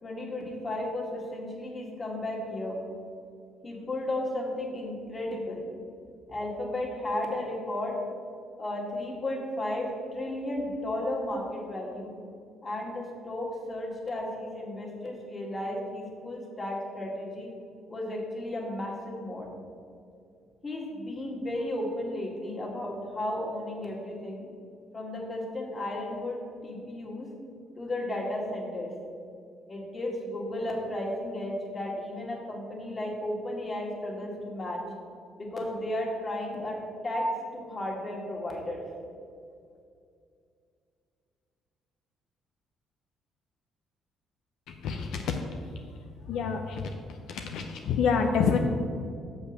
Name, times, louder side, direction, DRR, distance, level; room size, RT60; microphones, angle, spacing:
voice 1, 0.0-2.8 3.6-5.7 6.3-8.0 8.6-12.1 12.6-17.5 17.9-19.5 20.6-24.5 24.9-27.3 27.8-28.9 29.7-34.8 35.4-37.3 37.5-38.8, left 1 dB, 30° left, -1 dB, 2.1 m, -34 dB
voice 2, 44.7-45.4 46.3-47.0 47.3-48.6, left 6 dB, 80° left, 4 dB, 0.6 m, -27 dB
6.8 x 5.3 x 6.4 m, 2.4 s
cardioid pair, 90°, 0 cm